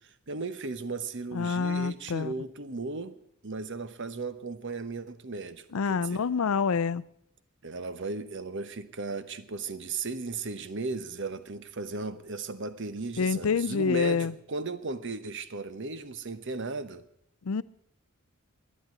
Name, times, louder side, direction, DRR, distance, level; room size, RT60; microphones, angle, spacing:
voice 1, 0.0-3.2 3.4-6.2 7.6-17.0, right 3 dB, 55° right, 1.0 m, -36 dB
voice 2, 1.3-2.3 5.7-7.0 13.2-14.3 17.5-17.6, left 5 dB, 75° left, 0.5 m, -27 dB
12.0 x 10.0 x 9.5 m
head